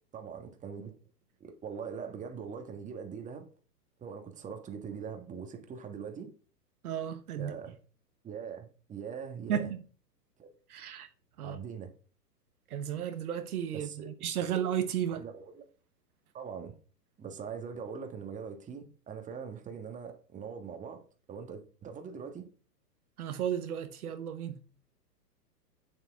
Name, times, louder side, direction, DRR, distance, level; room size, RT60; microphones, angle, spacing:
voice 1, 0.1-1.0 1.4-3.5 4.0-6.3 7.3-7.8 8.2-9.7 10.4-10.6 11.4-11.9 13.7-14.1 14.4-14.6 15.1-15.7 16.3-16.7 17.2-22.5, right 6 dB, 15° right, 1.5 m, -42 dB
voice 2, 6.8-7.5 9.5-9.8 10.7-11.1 11.4-11.6 12.7-13.9 14.2-15.2 23.2-24.6, right 9 dB, 60° right, 1.2 m, -33 dB
8.9 x 7.5 x 3.6 m
hypercardioid pair, 120°, 50 cm